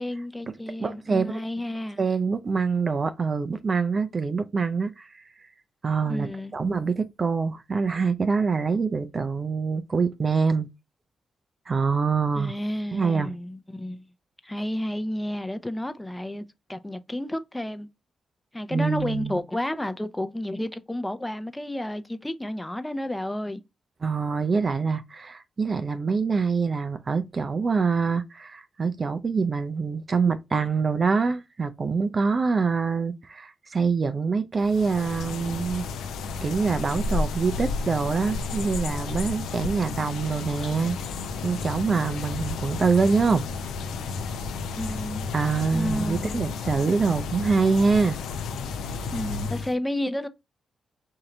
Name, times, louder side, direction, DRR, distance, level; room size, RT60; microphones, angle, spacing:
voice 1, 0.0-2.0 6.1-6.5 12.4-14.0 14.4-16.4 16.7-17.9 18.5-23.6 44.8-45.3 45.7-46.4 49.1-50.3, left 1 dB, 15° left, 0.6 m, -31 dB
voice 2, 0.8-1.4 2.0-5.2 5.8-6.3 6.5-10.7 11.7-12.5 12.9-13.4 18.7-19.4 24.0-35.9 36.4-41.0 41.4-43.5 45.3-48.2, right 5 dB, 45° right, 0.5 m, -25 dB
sound 1, 34.6-49.7, left 4 dB, 80° left, 0.5 m, -32 dB
3.7 x 2.8 x 4.4 m
hypercardioid pair, 40°, 0 cm